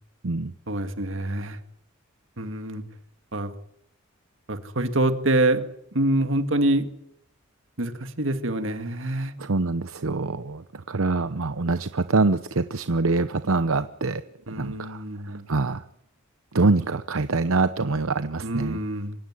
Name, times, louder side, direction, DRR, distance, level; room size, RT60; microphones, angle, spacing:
voice 1, 0.7-1.6 2.4-2.8 3.3-3.5 4.5-5.7 5.9-6.9 7.8-9.3 14.5-15.5 18.4-19.1, right 1 dB, 65° right, 8 dB, 2.2 m, -25 dB
voice 2, 9.4-14.2 14.6-15.8 16.5-18.8, right 3 dB, 85° right, 12 dB, 0.9 m, -25 dB
25.0 x 17.0 x 9.8 m, 0.76 s
head